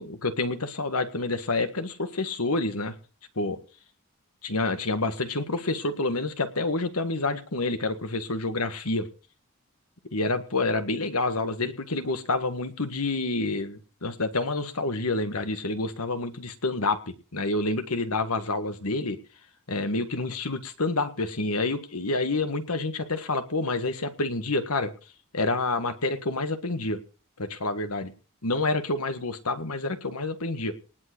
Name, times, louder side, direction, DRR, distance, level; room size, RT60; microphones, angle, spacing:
voice 1, 0.0-3.0 3.4-3.6 4.4-9.1 10.1-17.0 17.3-19.2 19.7-24.9 25.3-27.0 27.4-28.1 28.4-30.7, left 2 dB, 85° left, 9 dB, 1.8 m, -28 dB
19.0 x 7.7 x 6.1 m, 0.37 s
head